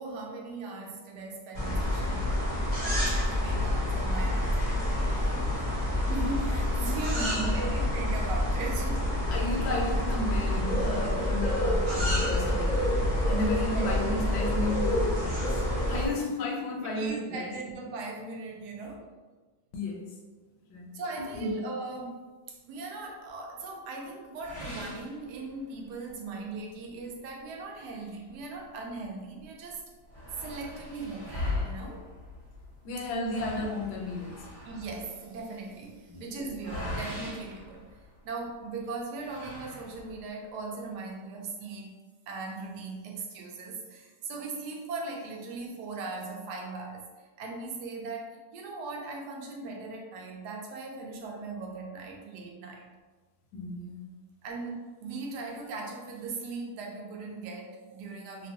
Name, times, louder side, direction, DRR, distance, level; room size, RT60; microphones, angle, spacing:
voice 1, 0.0-5.7 6.1-9.1 13.7-13.9 16.8-19.1 20.9-29.8 30.4-32.0 33.6-33.7 34.6-37.9 38.2-41.9 42.3-52.9 54.4-58.5, right 3 dB, 75° right, 0 dB, 1.1 m, -39 dB
sound 1, 1.5-16.1, left 1 dB, 55° right, 0.5 m, -28 dB
voice 2, 7.2-7.7 9.3-12.8 13.3-17.5 19.7-20.1 20.6-21.0 21.3-21.5 32.8-34.4 36.1-36.2 53.5-54.1, left 2 dB, 75° left, -1 dB, 1.2 m, -33 dB
sound 2, 24.4-25.9 26.3-26.4 26.9-27.0 27.7-29.1 29.4-29.5 29.7-38.5 39.1-40.3, left 2 dB, 30° right, 1.2 m, -40 dB
2.9 x 2.3 x 2.6 m, 1.3 s
omnidirectional pair, 1.9 m